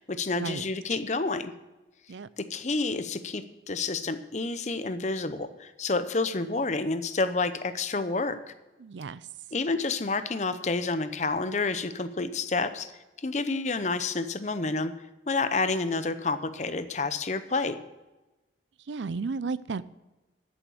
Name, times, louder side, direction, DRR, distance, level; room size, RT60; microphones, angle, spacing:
voice 1, 0.0-1.5 2.4-8.4 9.5-12.9 13.2-14.9 15.3-17.8, left 3 dB, 40° left, 11 dB, 0.7 m, -29 dB
voice 2, 8.8-9.2 18.9-19.8, right 4 dB, 80° right, 17 dB, 0.5 m, -33 dB
13.0 x 7.2 x 7.0 m, 1.1 s
head